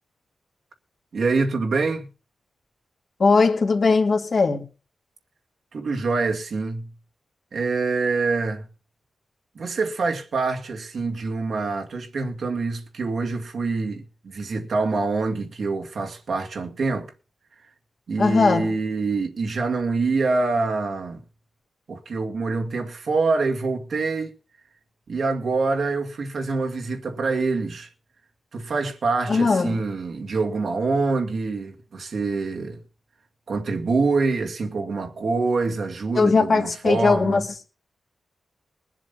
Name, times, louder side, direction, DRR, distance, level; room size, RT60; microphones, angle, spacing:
voice 1, 1.1-2.1 5.7-6.9 7.5-8.6 9.6-17.1 18.1-21.2 21.9-24.4 25.1-27.9 28.5-32.8 33.5-37.4, right 3 dB, 55° right, 2.0 m, -25 dB
voice 2, 3.2-4.6 18.2-18.7 29.3-29.8 36.2-37.5, left 4 dB, 45° left, 2.3 m, -19 dB
22.0 x 7.5 x 5.5 m
wide cardioid pair, 150°, 0 cm